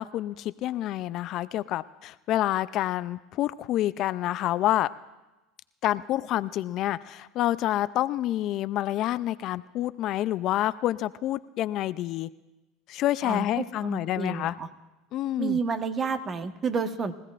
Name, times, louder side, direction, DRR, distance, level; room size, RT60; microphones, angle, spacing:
voice 1, 0.0-4.9 5.8-12.3 12.9-14.5 15.1-15.6, left 14 dB, 55° left, 15 dB, 0.4 m, -28 dB
voice 2, 13.2-14.7 15.4-17.2, right 5 dB, 35° right, 8 dB, 1.2 m, -30 dB
24.0 x 16.0 x 2.5 m, 1.1 s
hypercardioid pair, 90°, 0 cm